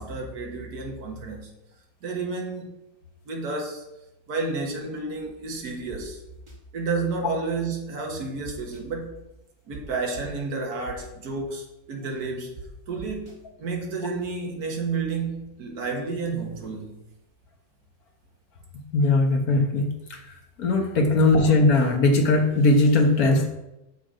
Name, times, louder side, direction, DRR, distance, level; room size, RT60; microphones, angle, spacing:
voice 1, 0.0-1.5 2.0-2.7 3.3-3.8 4.3-6.2 6.7-9.2 9.7-12.6 12.9-17.0, right 4 dB, 60° right, 0 dB, 2.0 m, -31 dB
sound 1, 5.9-6.0 6.5-6.6 8.4-8.8 9.7-9.8 10.1-10.2 10.8-11.1 12.5-12.6 13.0-13.3, right 6 dB, 15° right, 1.6 m, -41 dB
voice 2, 18.9-20.2 20.6-23.5, left 2 dB, 55° left, 3 dB, 1.6 m, -19 dB
7.2 x 6.7 x 5.0 m, 0.93 s
omnidirectional pair, 2.0 m